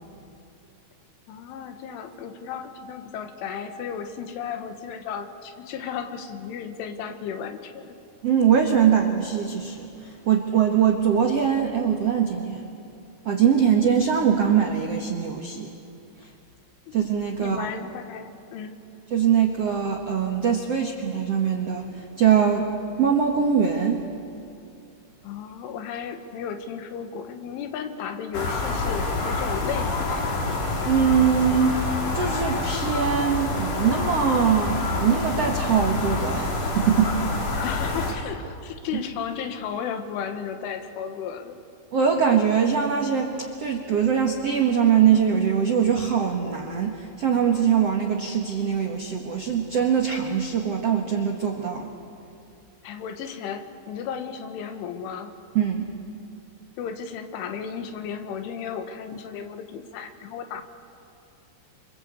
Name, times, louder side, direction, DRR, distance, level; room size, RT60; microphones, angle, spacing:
voice 1, 1.3-8.0 17.4-18.8 25.2-30.3 37.5-41.6 52.8-55.3 56.8-60.6, left 7 dB, 80° left, 7 dB, 4.0 m, -34 dB
voice 2, 8.2-12.6 13.2-15.7 16.2-16.3 16.9-17.7 19.1-22.7 23.0-24.0 30.8-37.1 41.9-51.9 55.5-55.9, right 7 dB, 75° right, 2 dB, 1.4 m, -22 dB
sound 1, 28.3-38.1, left 3 dB, 45° left, 3.8 m, -27 dB
27.5 x 26.0 x 8.3 m, 2.6 s
omnidirectional pair, 5.5 m